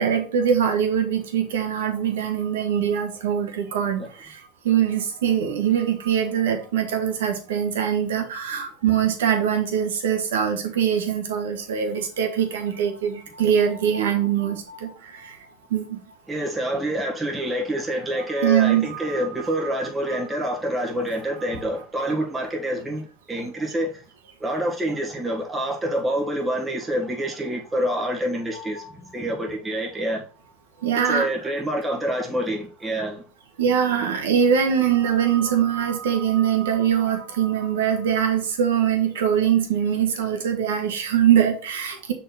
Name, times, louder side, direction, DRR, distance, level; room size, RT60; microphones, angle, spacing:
voice 1, 0.0-4.4 4.6-15.3 15.7-16.0 18.1-19.7 20.1-20.2 22.0-22.1 28.5-28.9 30.8-31.3 33.6-42.1, right 8 dB, 80° right, 1.6 m, -23 dB
voice 2, 16.3-23.9 24.4-28.8 29.1-30.2 31.1-33.2, right 1 dB, 15° right, 1.8 m, -27 dB
6.4 x 4.1 x 4.4 m
hypercardioid pair, 90°, 0 cm